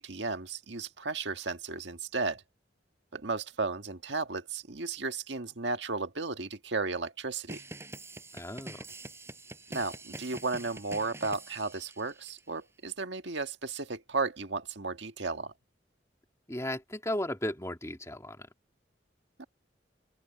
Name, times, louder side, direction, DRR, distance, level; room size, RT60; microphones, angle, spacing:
voice 1, 0.0-2.4 3.1-7.6 9.7-15.5 19.4-19.5, right 3 dB, 80° right, 1.7 m, -34 dB
sound 1, 7.5-12.4, right 2 dB, 15° right, 5.2 m, -45 dB
voice 2, 8.3-8.8 16.5-18.5, left 1 dB, 15° left, 2.5 m, -35 dB
open air
head